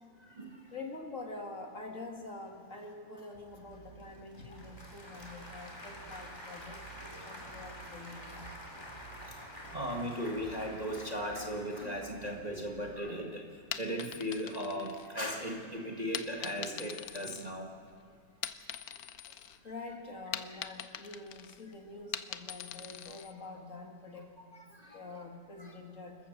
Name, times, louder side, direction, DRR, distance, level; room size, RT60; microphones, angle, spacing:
voice 1, 0.2-0.6 4.5-4.6 9.7-13.5 13.7-17.7 20.6-20.7 24.5-25.2 25.6-25.7, equal, 25° right, 0 dB, 1.6 m, -37 dB
voice 2, 0.7-8.6 19.6-24.3 24.9-26.2, left 3 dB, 45° left, 2 dB, 2.2 m, -46 dB
Applause / Crowd, 3.3-12.9, right 1 dB, 15° left, 2.8 m, -48 dB
sound 1, 13.6-15.5 16.1-17.9 18.3-19.6 19.9-23.3, left 10 dB, 65° left, 1.1 m, -42 dB
27.0 x 14.5 x 6.6 m, 2.2 s
omnidirectional pair, 2.0 m